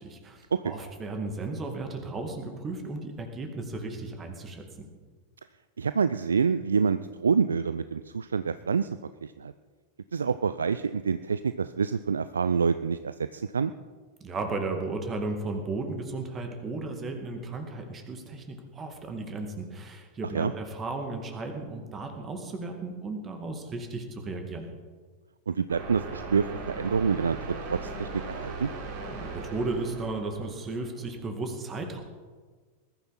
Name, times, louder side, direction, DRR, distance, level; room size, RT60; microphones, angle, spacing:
voice 1, 0.0-4.9 14.2-24.7 29.1-32.0, right 3 dB, 20° right, 4 dB, 2.2 m, -35 dB
voice 2, 5.8-8.9 9.2-9.5 10.1-13.7 20.3-20.5 25.5-28.7, right 5 dB, 70° right, 13 dB, 0.4 m, -27 dB
sound 1, 25.7-31.1, right 3 dB, 45° right, 4.7 m, -39 dB
20.5 x 13.0 x 4.3 m, 1.4 s
figure-of-eight pair, 90°, 0 cm